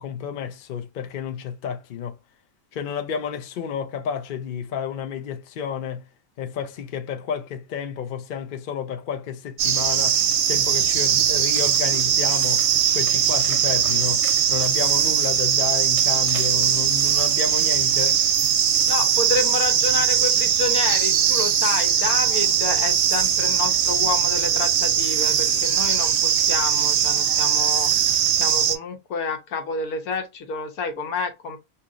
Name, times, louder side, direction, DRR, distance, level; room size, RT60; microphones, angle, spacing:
voice 1, 0.0-2.1 2.7-6.0 6.4-10.2 10.5-12.6 12.9-14.2 14.5-18.2, left 7 dB, 55° left, 0.6 m, -30 dB
sound 1, 9.6-28.8, right 9 dB, 65° right, 0.8 m, -20 dB
voice 2, 18.9-31.6, left 4 dB, 80° left, 1.3 m, -29 dB
2.8 x 2.8 x 3.7 m
omnidirectional pair, 1.5 m